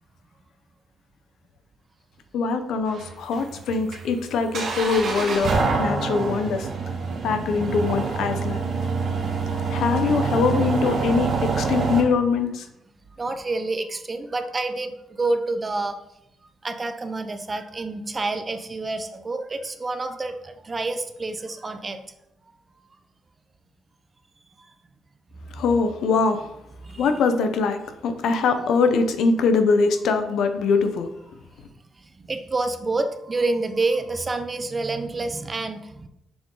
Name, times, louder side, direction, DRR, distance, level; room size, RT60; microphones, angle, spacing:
voice 1, 2.3-5.5 5.8-6.7 7.2-8.6 9.7-12.6 25.6-26.5 27.0-31.1, left 4 dB, 75° left, 8 dB, 0.7 m, -22 dB
sound 1, 2.9-12.0, right 4 dB, 60° right, 1.3 m, -26 dB
voice 2, 13.2-14.9 15.2-15.9 16.6-22.0 26.9-27.2 32.3-36.1, right 3 dB, 30° right, 8 dB, 0.6 m, -28 dB
6.9 x 3.8 x 3.8 m, 0.84 s
cardioid pair, 90°, 0 cm